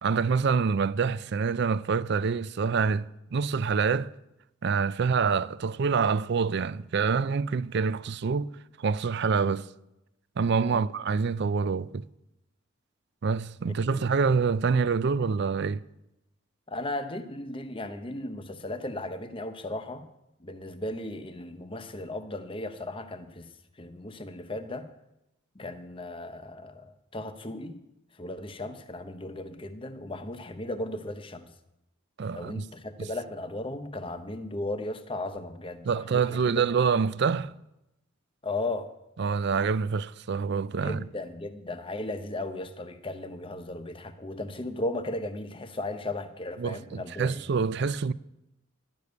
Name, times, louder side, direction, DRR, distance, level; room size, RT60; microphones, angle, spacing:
voice 1, 0.0-4.1 4.6-8.5 8.8-9.7 10.4-12.0 13.2-15.8 32.2-32.7 33.0-33.1 35.8-37.5 39.2-41.1 46.6-48.1, right 5 dB, 55° right, 0.4 m, -26 dB
voice 2, 13.8-14.1 16.7-20.1 20.4-23.5 23.8-24.9 25.5-27.8 28.2-31.5 32.3-36.6 38.4-38.9 40.7-47.4, left 2 dB, 25° left, 0.9 m, -36 dB
11.5 x 6.9 x 9.5 m
head